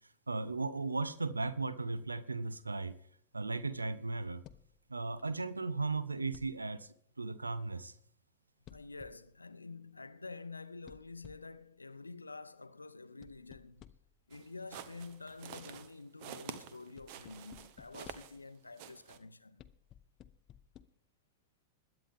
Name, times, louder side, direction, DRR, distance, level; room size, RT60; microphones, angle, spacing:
voice 1, 0.3-2.9 3.3-4.4 4.9-7.9, right 3 dB, 80° right, 0.6 m, -36 dB
sound 1, 4.4-4.8 6.3-6.7 8.6-9.3 10.9-11.6 13.2-14.2 17.0-18.4 19.6-20.8, left 10 dB, 35° left, 0.6 m, -57 dB
voice 2, 8.7-13.9 14.3-19.6, left 3 dB, 80° left, 0.6 m, -48 dB
sound 2, 14.3-18.5 18.8-19.2, right 10 dB, 45° right, 0.9 m, -49 dB
21.0 x 8.9 x 3.6 m
figure-of-eight pair, 90°, 0 cm